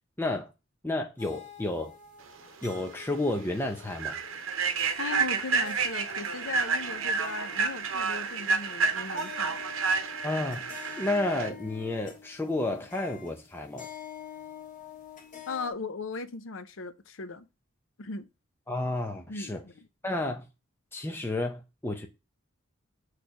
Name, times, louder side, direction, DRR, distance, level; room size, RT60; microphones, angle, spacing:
voice 1, 0.2-0.5 0.8-1.9 2.6-4.2 10.2-10.6 11.0-13.9 18.7-19.6 20.0-20.4 20.9-22.1, left 2 dB, 10° left, 0.6 m, -31 dB
sound 1, 1.2-15.7, left 7 dB, 40° left, 1.4 m, -48 dB
Human voice / Train, 2.6-2.8 3.2-3.4 3.9-11.5, right 5 dB, 90° right, 0.8 m, -30 dB
voice 2, 5.0-9.6 15.5-17.5 18.0-18.3 19.3-19.9, left 4 dB, 75° left, 0.7 m, -37 dB
6.3 x 3.3 x 5.7 m
head